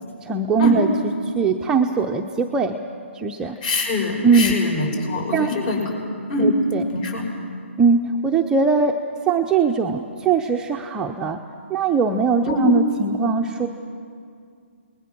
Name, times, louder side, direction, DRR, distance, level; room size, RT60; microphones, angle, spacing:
voice 1, 0.2-0.9 1.2-2.8 3.1-3.6 4.2-4.6 5.3-5.5 6.4-6.8 7.8-9.0 9.3-11.4 11.7-13.7, right 5 dB, 10° right, 2 dB, 0.7 m, -20 dB
voice 2, 3.4-5.8 6.3-6.5 6.9-7.2 12.5-12.6, left 3 dB, 40° left, 3 dB, 5.7 m, -24 dB
28.5 x 20.0 x 6.1 m, 2.3 s
hypercardioid pair, 150°, 7 cm